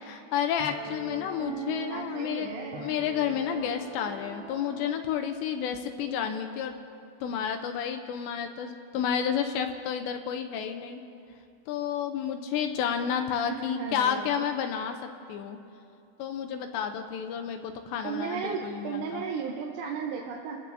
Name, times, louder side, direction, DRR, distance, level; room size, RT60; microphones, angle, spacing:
voice 1, 0.0-2.5 2.8-6.8 7.2-11.0 11.7-15.0 15.3-15.6 16.2-19.2, left 8 dB, 80° left, 6 dB, 2.7 m, -31 dB
Piano, 0.6-5.9, right 3 dB, 50° right, 3.4 m, -41 dB
voice 2, 1.9-2.9 13.5-14.5 18.0-20.6, right 6 dB, 75° right, -1 dB, 2.8 m, -35 dB
28.5 x 15.5 x 2.7 m, 2.5 s
omnidirectional pair, 5.4 m